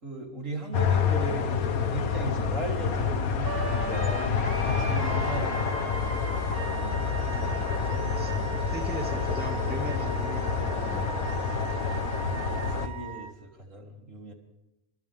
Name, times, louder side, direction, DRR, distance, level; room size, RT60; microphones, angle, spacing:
voice 1, 0.0-5.8 6.5-7.5 12.3-14.3, right 2 dB, 55° right, 0 dB, 4.2 m, -37 dB
sound 1, 0.7-12.9, left 6 dB, 65° left, 1.7 m, -28 dB
Wind instrument woodwind instrument, 3.4-13.3, right 7 dB, 75° right, 1.9 m, -39 dB
voice 2, 7.3-8.3 8.7-11.2, right 1 dB, 5° right, 2 dB, 2.3 m, -39 dB
29.5 x 28.0 x 3.7 m, 0.92 s
omnidirectional pair, 1.6 m